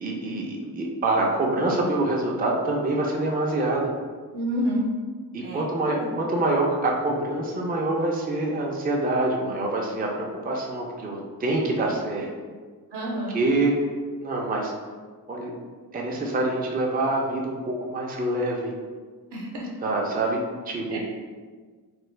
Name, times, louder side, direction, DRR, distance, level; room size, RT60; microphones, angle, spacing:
voice 1, 0.0-3.9 5.3-12.3 13.3-13.7 14.2-14.7 15.3-15.5 15.9-18.7 19.8-20.4 20.7-21.0, right 2 dB, 25° right, -1 dB, 0.4 m, -26 dB
voice 2, 4.3-4.8 5.4-5.7 12.9-13.4 19.3-19.7 20.9-21.0, equal, 80° right, -2 dB, 0.8 m, -28 dB
3.2 x 2.2 x 3.2 m, 1.5 s
wide cardioid pair, 100°, 39 cm